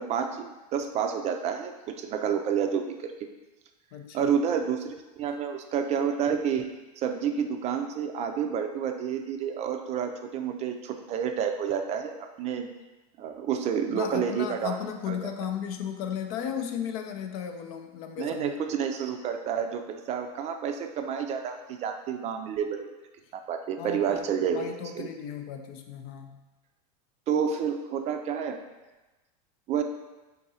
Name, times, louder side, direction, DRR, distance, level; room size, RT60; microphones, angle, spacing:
voice 1, 0.0-3.1 4.1-6.7 7.0-12.7 13.2-14.8 15.1-15.2 18.2-22.9 23.3-25.1 27.3-28.6 29.7-29.8, right 7 dB, 35° right, 5 dB, 0.4 m, -29 dB
voice 2, 3.9-4.3 5.3-5.4 13.9-18.5 23.8-26.4, left 8 dB, 65° left, 6 dB, 0.5 m, -35 dB
3.8 x 2.6 x 4.1 m, 1.1 s
supercardioid pair, 120°, 20 cm